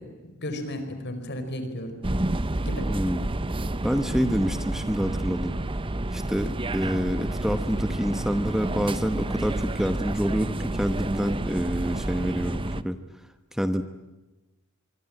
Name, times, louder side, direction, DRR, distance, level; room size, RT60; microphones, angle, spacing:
voice 1, 0.0-2.1 2.6-2.9 4.1-4.4, left 1 dB, 55° left, 8 dB, 4.9 m, -34 dB
sound 1, 2.0-12.8, right 1 dB, 25° right, 0.8 m, -29 dB
voice 2, 2.9-3.3 3.8-5.5 6.1-13.0 13.5-13.8, equal, ahead, 9 dB, 1.0 m, -27 dB
25.0 x 24.0 x 9.0 m, 1.1 s
head